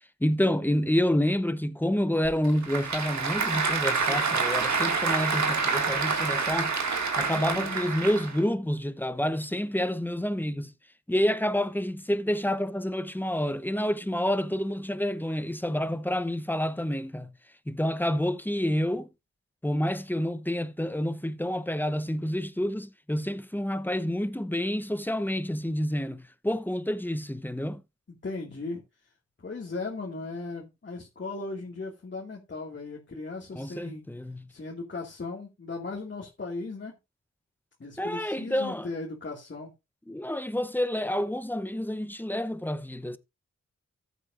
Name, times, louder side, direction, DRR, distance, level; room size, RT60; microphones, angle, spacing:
voice 1, 0.2-6.7 7.2-10.7 11.1-17.3 17.7-19.1 19.6-27.8 33.5-34.5 38.0-38.9 40.1-43.2, equal, 5° left, 0.8 m, -28 dB
Applause / Crowd, 2.2-8.4, right 4 dB, 70° right, 2.1 m, -27 dB
voice 2, 7.2-7.8 28.2-28.8 29.4-34.0 34.5-37.0 37.8-39.7, left 3 dB, 40° left, 2.1 m, -37 dB
14.0 x 8.1 x 2.5 m
wide cardioid pair, 85°, 29 cm